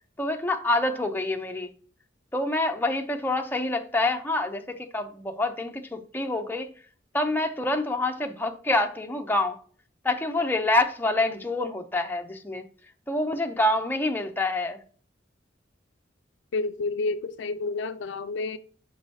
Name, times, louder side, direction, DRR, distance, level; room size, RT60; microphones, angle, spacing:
voice 1, 0.2-1.7 2.3-6.7 7.1-9.6 10.0-12.6 13.1-14.8, left 2 dB, 10° left, 0.6 m, -26 dB
voice 2, 16.5-18.6, left 3 dB, 70° left, 0.5 m, -29 dB
6.6 x 5.3 x 2.8 m
head